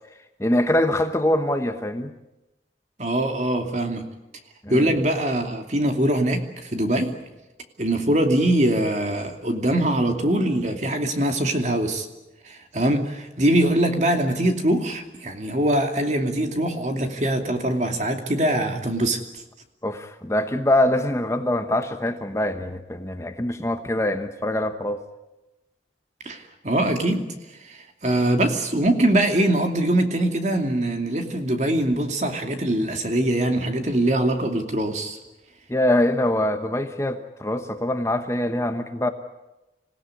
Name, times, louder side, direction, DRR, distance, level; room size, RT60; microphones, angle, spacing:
voice 1, 0.4-2.1 4.6-4.9 19.8-25.0 35.7-39.1, left 1 dB, 15° left, 7 dB, 1.0 m, -24 dB
voice 2, 3.0-4.0 4.7-7.1 7.8-12.1 12.4-19.2 26.2-27.3 27.6-35.2, right 1 dB, 40° right, 4 dB, 2.6 m, -22 dB
26.5 x 17.0 x 9.8 m, 1.0 s
head